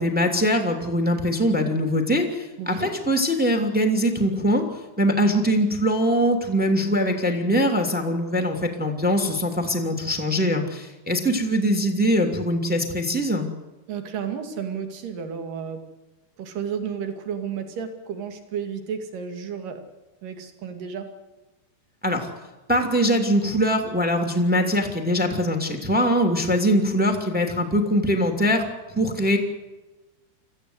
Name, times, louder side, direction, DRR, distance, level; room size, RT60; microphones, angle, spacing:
voice 1, 0.0-4.6 5.0-13.5 22.0-22.3 22.7-28.6 28.9-29.4, equal, 5° right, 4 dB, 1.3 m, -22 dB
voice 2, 2.6-2.9 13.9-15.8 16.4-19.8 20.2-21.1, right 7 dB, 50° right, 6 dB, 3.6 m, -32 dB
25.5 x 16.0 x 8.1 m, 1.1 s
omnidirectional pair, 5.6 m